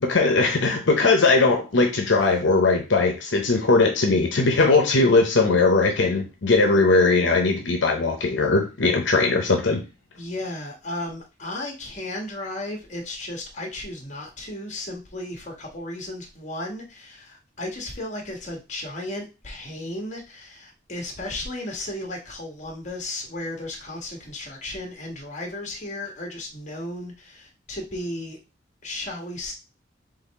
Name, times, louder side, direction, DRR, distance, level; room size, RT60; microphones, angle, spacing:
voice 1, 0.0-9.8, left 3 dB, 75° left, 3 dB, 0.7 m, -19 dB
voice 2, 10.2-28.4 28.8-29.5, left 1 dB, 40° left, 1 dB, 1.3 m, -34 dB
4.0 x 3.2 x 4.1 m, 0.29 s
head